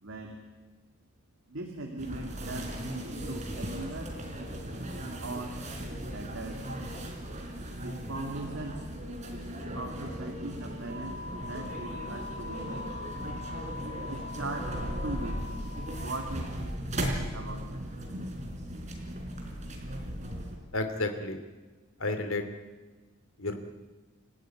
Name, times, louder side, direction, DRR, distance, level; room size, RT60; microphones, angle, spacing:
voice 1, 0.0-0.4 1.5-4.2 5.2-5.6 6.1-6.8 7.8-8.8 9.7-12.9 14.1-16.8 17.3-17.8, right 2 dB, 70° right, 2 dB, 2.5 m, -40 dB
sound 1, 2.0-20.6, equal, 35° right, 3.9 m, -37 dB
voice 2, 20.7-21.4 22.0-22.4 23.4-23.6, left 2 dB, 75° left, 7 dB, 2.6 m, -31 dB
28.5 x 15.5 x 9.5 m, 1.3 s
head